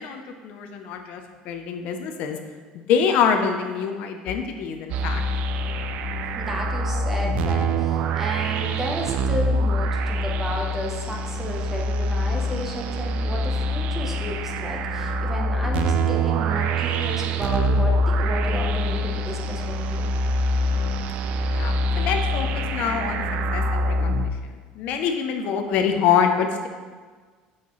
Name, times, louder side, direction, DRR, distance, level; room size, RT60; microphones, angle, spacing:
voice 1, 0.0-2.4 2.9-5.2 21.5-23.2 23.5-26.7, left 7 dB, 55° left, 5 dB, 0.6 m, -25 dB
sound 1, 4.9-24.3, right 1 dB, 50° right, 0.3 m, -25 dB
voice 2, 6.3-20.1, equal, 10° right, 0 dB, 0.8 m, -32 dB
8.4 x 5.7 x 3.1 m, 1.5 s
cardioid pair, 170°, 3 cm